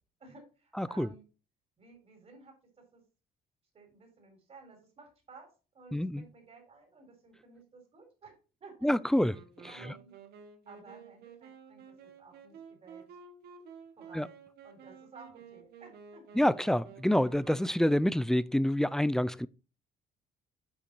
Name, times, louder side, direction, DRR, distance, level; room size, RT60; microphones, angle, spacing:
voice 1, 0.2-1.2 1.8-3.0 3.7-8.3 8.6-8.9 9.7-10.2 10.7-13.0 14.0-14.3 14.6-16.4, right 4 dB, 35° right, 4.0 m, -55 dB
voice 2, 0.8-1.1 5.9-6.2 8.8-9.4 14.1-14.3 16.3-19.5, left 1 dB, 5° left, 0.3 m, -27 dB
Wind instrument woodwind instrument, 9.1-18.2, right 6 dB, 75° right, 1.5 m, -52 dB
8.6 x 5.7 x 4.4 m
cardioid pair, 110°, 17 cm